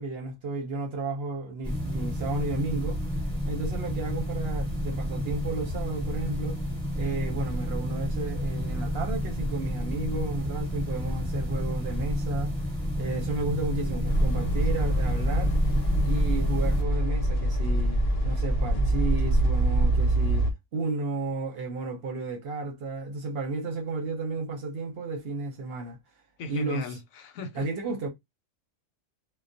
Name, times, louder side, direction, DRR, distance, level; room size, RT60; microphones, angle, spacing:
voice 1, 0.0-3.0 3.5-6.6 6.9-12.5 13.0-15.6 16.0-20.5 20.7-26.0 26.5-27.0 27.5-28.1, right 3 dB, 55° right, 0.8 m, -33 dB
sound 1, 1.6-16.8, equal, 5° left, 1.0 m, -30 dB
sound 2, 14.1-20.5, right 1 dB, 55° left, 0.9 m, -24 dB
voice 2, 26.4-27.7, left 2 dB, 90° left, 1.0 m, -37 dB
2.3 x 2.1 x 2.5 m
omnidirectional pair, 1.4 m